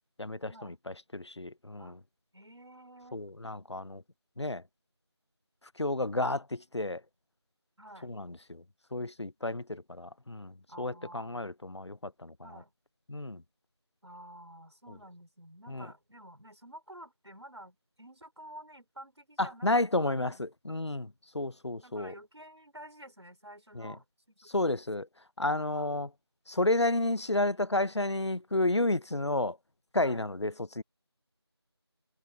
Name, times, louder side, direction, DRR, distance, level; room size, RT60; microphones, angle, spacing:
voice 1, 0.2-0.7 1.1-2.0 3.1-4.0 4.4-4.6 5.8-7.0 8.0-8.6 8.9-12.3 13.1-13.4 15.7-15.9 19.4-21.1 21.3-22.1 23.8-23.9 24.5-25.1 25.4-26.1 26.5-29.6 29.9-30.8, left 2 dB, 90° left, 0.7 m, -31 dB
voice 2, 2.3-3.2 7.8-8.1 10.7-11.5 12.4-12.7 14.0-20.4 21.8-24.7 25.5-25.9 30.0-30.3, right 1 dB, 85° right, 4.6 m, -51 dB
figure-of-eight pair, 170°, 14 cm